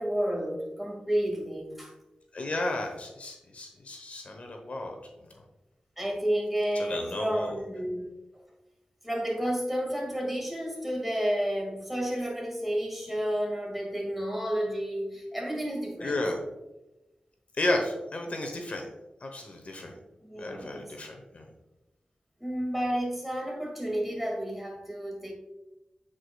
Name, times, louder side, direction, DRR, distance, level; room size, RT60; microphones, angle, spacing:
voice 1, 0.0-1.9 6.0-8.1 9.0-16.2 20.2-20.9 22.4-25.3, equal, 5° right, -1 dB, 2.1 m, -31 dB
voice 2, 2.3-4.9 5.3-5.4 6.7-7.5 16.0-16.4 17.6-18.9 19.2-19.9 20.4-21.5, left 2 dB, 60° left, 3 dB, 0.9 m, -33 dB
8.4 x 4.9 x 2.3 m, 0.99 s
wide cardioid pair, 70°, 3 cm